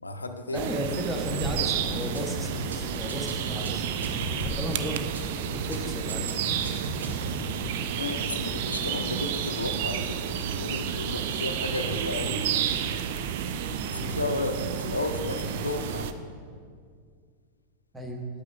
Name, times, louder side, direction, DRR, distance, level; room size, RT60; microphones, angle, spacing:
voice 1, 0.0-0.7 7.4-12.4 13.9-16.1, left 2 dB, 80° left, 7 dB, 0.5 m, -33 dB
voice 2, 0.5-3.9 4.4-5.0 5.5-6.4 13.9-14.2 17.9-18.2, equal, 5° right, 1 dB, 1.1 m, -34 dB
sound 1, 0.5-16.1, right 8 dB, 50° right, 0.4 m, -31 dB
sound 2, 1.4-1.7 2.0-2.2 2.5-2.8 3.1-4.7 5.0-5.2 5.5-5.8 6.1-7.4, right 2 dB, 70° right, 1.0 m, -34 dB
10.0 x 8.3 x 2.4 m, 2.1 s
figure-of-eight pair, 90°, 0 cm